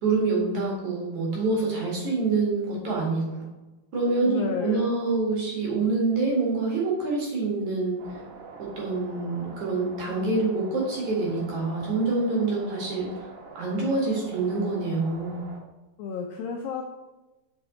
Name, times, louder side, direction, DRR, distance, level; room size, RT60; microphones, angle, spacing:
voice 1, 0.0-3.4 3.9-8.0 8.8-13.3 13.5-15.4, right 3 dB, 55° right, -3 dB, 2.8 m, -26 dB
voice 2, 4.3-4.9 16.0-16.8, left 6 dB, 90° left, 2 dB, 2.0 m, -31 dB
sound 1, 8.0-15.6, right 4 dB, 85° right, 3.5 m, -44 dB
8.8 x 6.0 x 3.8 m, 1.1 s
omnidirectional pair, 5.0 m